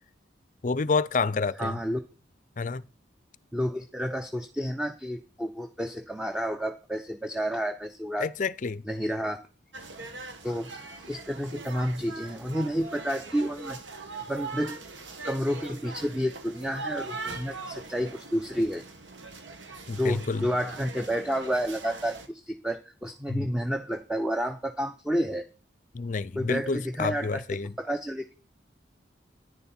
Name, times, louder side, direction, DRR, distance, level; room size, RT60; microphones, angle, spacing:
voice 1, 0.6-1.8 2.6-2.8 8.2-8.8 19.9-20.5 23.3-23.5 25.9-27.7, left 4 dB, 45° left, 0.5 m, -29 dB
voice 2, 1.6-2.0 3.5-8.3 8.8-9.4 10.4-13.8 14.3-14.8 15.2-18.8 19.9-25.5 26.4-27.4 27.8-28.3, equal, 5° right, 0.7 m, -30 dB
sound 1, 9.7-22.3, right 3 dB, 90° right, 2.0 m, -41 dB
10.5 x 10.0 x 4.3 m
head